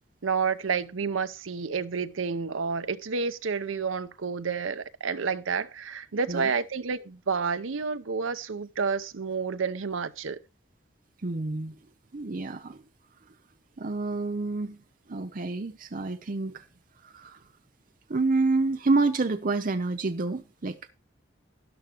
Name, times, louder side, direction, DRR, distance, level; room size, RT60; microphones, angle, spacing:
voice 1, 0.2-10.4, right 5 dB, 90° right, 0.7 m, -30 dB
voice 2, 11.2-11.8 12.1-12.8 13.8-14.8 15.1-16.7 17.0-17.5 18.1-20.8, right 3 dB, 45° right, 0.6 m, -28 dB
13.0 x 10.5 x 2.9 m
head